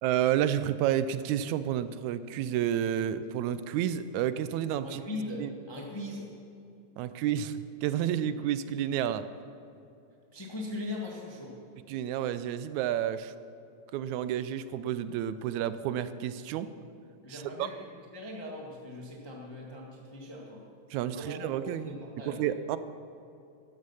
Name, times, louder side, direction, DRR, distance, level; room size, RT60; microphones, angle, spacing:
voice 1, 0.0-5.0 5.4-5.5 7.0-9.2 11.9-13.3 13.9-16.7 17.3-17.7 20.9-21.9 22.3-22.8, right 10 dB, 85° right, 13 dB, 1.9 m, -30 dB
voice 2, 4.8-6.3 10.3-11.6 17.2-20.6 21.1-22.4, left 2 dB, 20° left, -2 dB, 0.8 m, -40 dB
13.0 x 11.0 x 5.6 m, 2.6 s
omnidirectional pair, 3.3 m